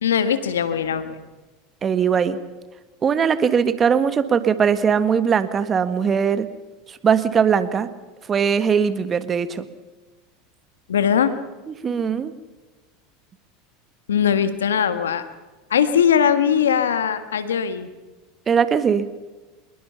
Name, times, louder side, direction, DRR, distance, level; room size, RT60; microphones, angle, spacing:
voice 1, 0.0-1.2 10.9-11.3 14.1-15.2 15.7-17.9, left 8 dB, 85° left, 11 dB, 1.6 m, -20 dB
voice 2, 1.8-2.4 3.0-6.5 7.0-7.9 8.3-9.6 11.8-12.3 18.5-19.1, right 7 dB, 30° right, 12 dB, 1.6 m, -20 dB
25.0 x 21.5 x 5.8 m, 1.2 s
hypercardioid pair, 85°, 0 cm